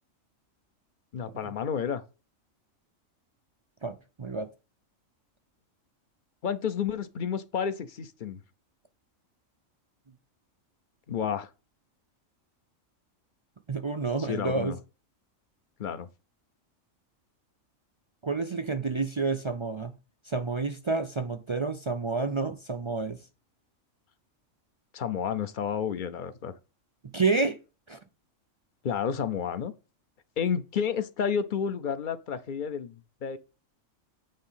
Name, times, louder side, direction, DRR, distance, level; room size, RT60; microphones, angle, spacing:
voice 1, 1.1-2.0 6.4-8.4 11.1-11.5 14.2-14.8 15.8-16.1 24.9-26.5 28.8-29.7 30.4-33.4, left 7 dB, 50° left, 0.7 m, -31 dB
voice 2, 3.8-4.5 13.7-14.8 18.2-19.9 20.2-23.2 27.0-27.6 27.9-28.0, right 4 dB, 50° right, 0.3 m, -29 dB
8.7 x 3.6 x 5.6 m
omnidirectional pair, 1.3 m